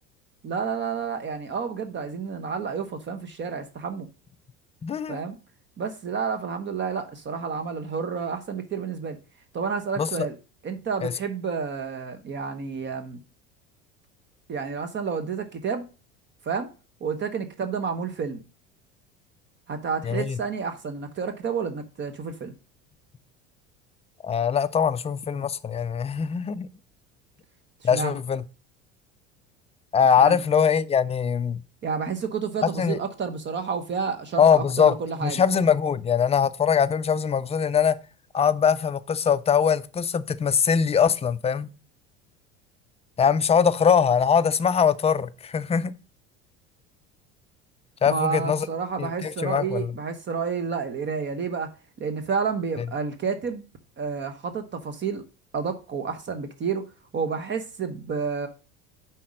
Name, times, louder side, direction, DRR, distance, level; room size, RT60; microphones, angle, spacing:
voice 1, 0.4-4.1 5.1-5.4 5.8-9.2 9.5-10.3 10.6-13.2 14.5-15.9 16.4-16.7 17.0-18.4 19.7-22.5 27.9-28.2 30.2-30.4 31.8-35.4 48.1-51.7 52.0-53.6 54.0-55.2 55.5-56.9 57.1-58.5, right 5 dB, 35° right, 1.0 m, -30 dB
voice 2, 4.8-5.2 10.0-10.3 11.0-11.1 20.0-20.4 24.2-26.7 27.8-28.4 29.9-31.6 32.6-33.0 34.4-38.0 38.3-41.7 43.2-45.9 48.0-48.7 49.0-49.9 52.8-52.9, left 7 dB, 20° left, 0.4 m, -22 dB
5.7 x 4.2 x 6.3 m
hypercardioid pair, 85°, 31 cm